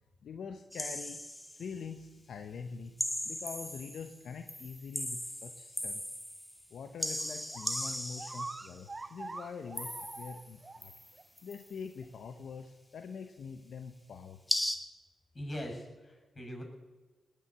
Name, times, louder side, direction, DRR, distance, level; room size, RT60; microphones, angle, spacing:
voice 1, 0.2-1.2 1.6-3.0 3.2-6.1 6.7-10.9 11.4-14.4, left 6 dB, 75° left, 6 dB, 0.9 m, -44 dB
sound 1, 0.7-1.7 3.0-4.2 4.5-6.6 7.0-8.8 9.8-10.5 10.8-11.7 14.5-14.8, equal, 5° left, 2.1 m, -37 dB
sound 2, 7.2-7.3 7.5-10.8 11.2-11.3 12.0-12.1, right 3 dB, 35° right, 0.6 m, -44 dB
voice 2, 15.3-16.6, equal, 35° left, 2 dB, 6.7 m, -41 dB
20.0 x 7.2 x 8.5 m, 1.2 s
cardioid pair, 55°, 0 cm